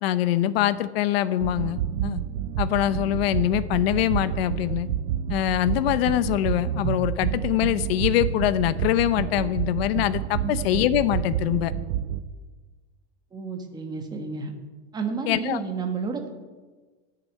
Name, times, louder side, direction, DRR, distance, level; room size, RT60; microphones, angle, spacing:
voice 1, 0.0-2.2 2.6-4.9 5.3-11.7 15.3-15.6, left 13 dB, 65° left, 15 dB, 0.8 m, -24 dB
sound 1, 1.4-12.2, right 10 dB, 80° right, 0.9 m, -29 dB
voice 2, 13.3-14.5 14.9-16.3, right 4 dB, 15° right, 4 dB, 1.3 m, -31 dB
12.5 x 7.0 x 9.4 m, 1.3 s
supercardioid pair, 165°, 32 cm